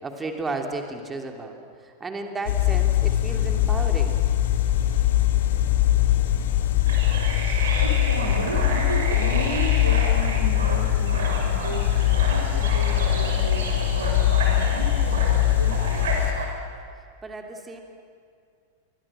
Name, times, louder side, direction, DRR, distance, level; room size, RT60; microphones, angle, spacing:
voice 1, 0.0-1.6 2.0-4.2 17.2-17.8, right 3 dB, 15° right, 4 dB, 3.0 m, -33 dB
sound 1, 2.5-16.3, left 13 dB, 60° left, 2.3 m, -22 dB
sound 2, 6.9-16.5, right 3 dB, 60° right, 6.0 m, -32 dB
voice 2, 7.8-16.2, right 1 dB, 80° right, 5 dB, 3.2 m, -34 dB
28.5 x 23.0 x 7.7 m, 2.3 s
figure-of-eight pair, 90°, 0 cm